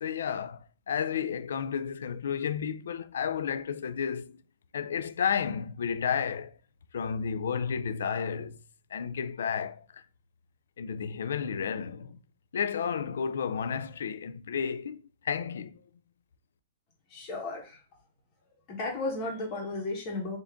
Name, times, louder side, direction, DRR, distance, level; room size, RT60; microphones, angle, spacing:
voice 1, 0.0-4.4 4.7-6.6 6.9-8.6 8.9-10.0 10.8-12.2 12.5-15.8, left 7 dB, 90° left, 0.3 m, -32 dB
voice 2, 17.1-17.8 18.7-20.4, left 2 dB, 25° left, 1.1 m, -34 dB
3.5 x 2.6 x 3.6 m
hypercardioid pair, 170°, 0 cm